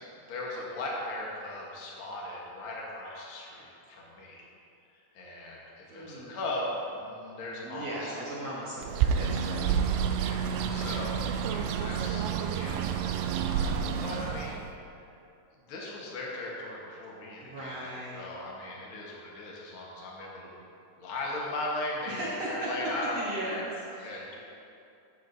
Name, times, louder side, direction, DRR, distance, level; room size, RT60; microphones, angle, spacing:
voice 1, 0.2-4.4 4.9-8.5 10.2-14.9 15.7-20.6 21.0-23.7 24.0-24.4, left 1 dB, 70° left, -4 dB, 1.2 m, -38 dB
voice 2, 5.9-6.4 7.6-9.7 17.4-18.2 22.1-22.9 23.1-24.3, right 1 dB, 60° right, -7 dB, 1.8 m, -37 dB
Bird, 8.8-14.7, right 7 dB, 85° right, 2.4 m, -29 dB
13.0 x 9.2 x 2.7 m, 2.6 s
omnidirectional pair, 4.4 m